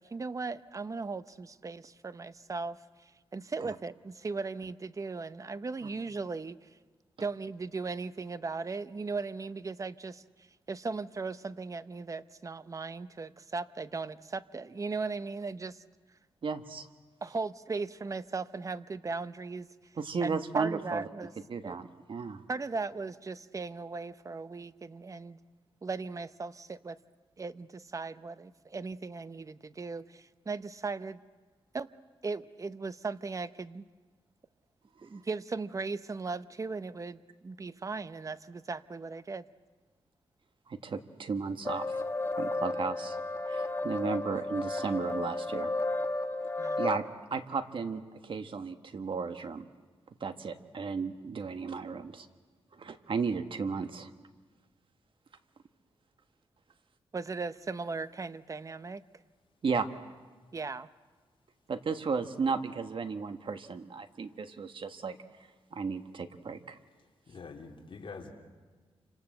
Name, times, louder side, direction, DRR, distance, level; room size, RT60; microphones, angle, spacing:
voice 1, 0.0-2.8 3.3-6.6 7.2-10.2 10.7-15.8 17.2-19.7 20.2-21.3 21.6-21.8 22.5-25.4 25.8-27.0 27.4-31.2 31.7-31.9 32.2-33.8 35.0-39.4 46.6-46.8 57.1-59.0 60.5-60.9, right 4 dB, 30° right, 14 dB, 0.8 m, -37 dB
voice 2, 16.4-16.9 20.0-21.1 21.5-22.4 40.7-42.0 42.4-43.2 43.5-45.7 46.8-47.0 47.3-49.7 50.2-52.3 52.7-54.1 59.6-59.9 61.7-65.2 65.7-66.8, right 5 dB, 55° right, 8 dB, 1.5 m, -34 dB
sound 1, 41.6-47.0, left 2 dB, 25° left, 1.4 m, -33 dB
voice 3, 67.3-68.3, left 4 dB, 55° left, 0 dB, 3.4 m, -45 dB
28.5 x 26.0 x 7.9 m, 1.4 s
wide cardioid pair, 120°, 10 cm